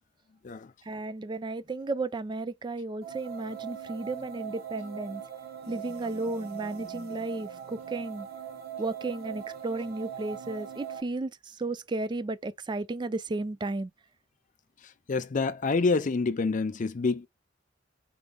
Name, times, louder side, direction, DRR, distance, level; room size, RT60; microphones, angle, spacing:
voice 1, 0.9-5.2 5.7-8.3 8.8-11.3 11.6-13.9, right 2 dB, 25° right, 0.4 m, -33 dB
sound 1, 3.0-11.0, right 8 dB, 55° right, 1.0 m, -41 dB
voice 2, 15.1-17.3, left 4 dB, 45° left, 0.4 m, -27 dB
4.8 x 2.2 x 3.5 m
head